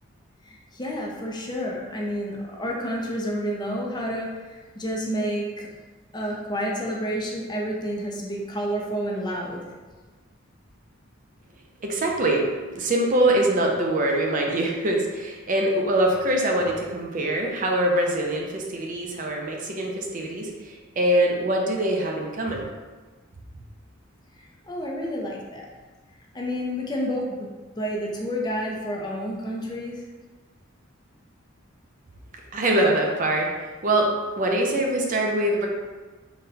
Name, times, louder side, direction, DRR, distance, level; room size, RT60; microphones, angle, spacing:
voice 1, 0.4-5.7 6.1-9.7 24.4-25.7 26.3-27.5 27.8-30.0, equal, 20° left, -1 dB, 0.5 m, -30 dB
voice 2, 11.8-12.5 12.7-22.7 32.5-33.5 33.8-34.1 34.4-35.7, right 1 dB, 40° right, 0 dB, 0.5 m, -23 dB
4.0 x 2.2 x 3.9 m, 1.3 s
head